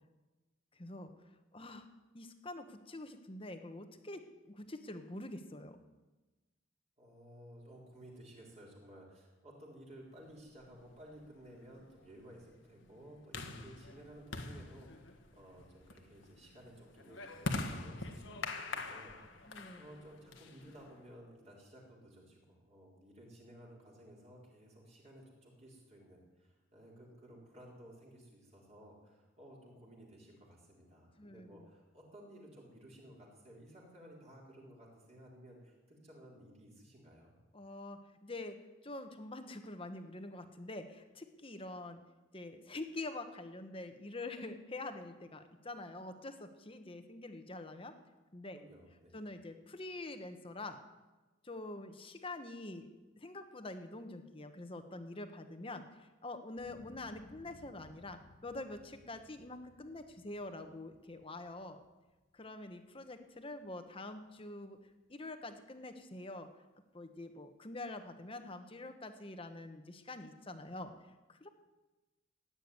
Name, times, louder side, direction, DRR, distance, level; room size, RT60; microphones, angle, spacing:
voice 1, 0.8-1.1 1.5-1.9 2.1-4.2 4.6-5.8 19.5-19.8 31.2-31.7 37.5-38.6 38.8-42.0 42.3-47.9 48.3-48.6 49.1-50.8 51.4-52.9 53.2-61.8 62.3-64.8 65.1-66.5 66.9-70.9 71.3-71.5, left 2 dB, 30° left, 7 dB, 1.2 m, -46 dB
voice 2, 7.0-18.2 18.6-37.4 48.5-49.2, right 1 dB, 35° right, -3 dB, 4.1 m, -56 dB
sound 1, 10.6-21.0, left 2 dB, 75° left, 1.5 m, -44 dB
sound 2, 56.5-62.9 63.3-63.9, left 2 dB, 55° left, 2.0 m, -62 dB
16.0 x 9.0 x 9.6 m, 1.2 s
head